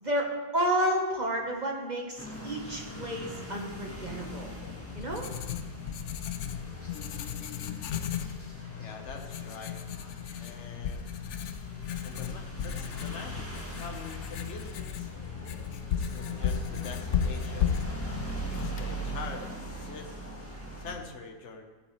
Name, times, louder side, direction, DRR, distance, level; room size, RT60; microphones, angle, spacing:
voice 1, 0.0-4.5 4.9-5.3, equal, 30° right, 0 dB, 1.1 m, -31 dB
sound 1, 2.2-21.0, right 1 dB, 10° left, 1.4 m, -41 dB
Writing, 4.6-19.4, left 7 dB, 85° left, 0.6 m, -35 dB
voice 2, 8.7-9.8 10.4-11.2 12.0-15.1 16.0-17.8 18.5-20.2 20.7-21.7, left 4 dB, 45° left, 3 dB, 1.3 m, -44 dB
14.5 x 8.5 x 3.2 m, 1.3 s
omnidirectional pair, 1.9 m